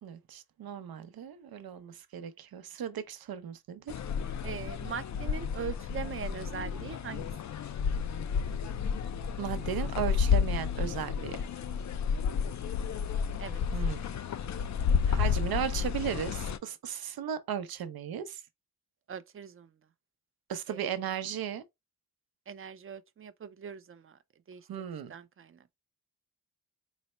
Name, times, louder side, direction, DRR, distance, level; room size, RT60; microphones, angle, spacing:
voice 1, 0.0-3.9 9.4-11.4 13.7-14.0 15.1-18.4 20.5-21.6 24.7-25.1, right 8 dB, 80° right, 0.6 m, -36 dB
sound 1, 3.9-16.6, left 7 dB, 50° left, 0.5 m, -31 dB
voice 2, 4.4-7.3 13.4-13.6 19.1-19.7 20.7-20.8 22.5-24.2 24.5-24.6 25.1-25.6, right 7 dB, 35° right, 0.5 m, -41 dB
4.1 x 2.1 x 4.1 m
cardioid pair, 70°, 36 cm